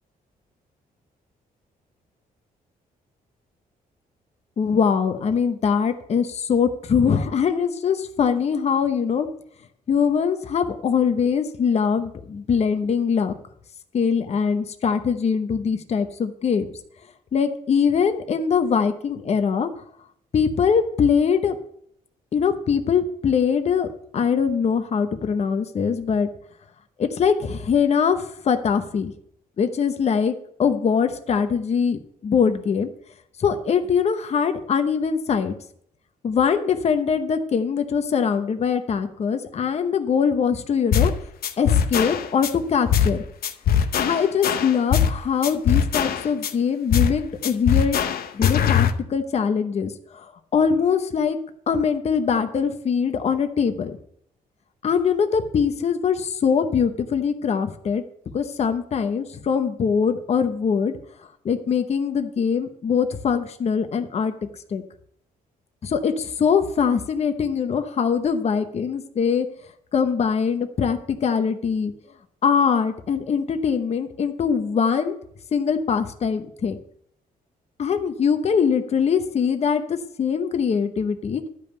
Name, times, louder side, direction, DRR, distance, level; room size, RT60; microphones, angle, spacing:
voice 1, 4.6-9.3 9.9-13.3 13.9-16.7 17.3-19.7 20.3-21.6 22.3-23.9 24.1-26.3 27.0-29.1 29.6-30.3 30.6-32.9 33.4-35.5 36.2-41.1 41.6-43.2 44.0-48.0 48.3-50.2 50.5-51.4 51.7-54.0 54.8-58.0 58.3-60.9 61.4-64.3 64.7-64.8 65.8-69.5 69.9-71.9 72.4-75.2 75.5-76.8 77.8-81.4, left 6 dB, 45° left, 8 dB, 0.9 m, -22 dB
sound 1, 40.9-41.2 41.4-42.5 42.9-43.2 43.4-45.2 45.4-46.5 46.9-47.2 47.4-48.9, left 8 dB, 75° left, 0.8 m, -21 dB
11.5 x 5.4 x 7.9 m, 0.68 s
cardioid pair, 135°, 16 cm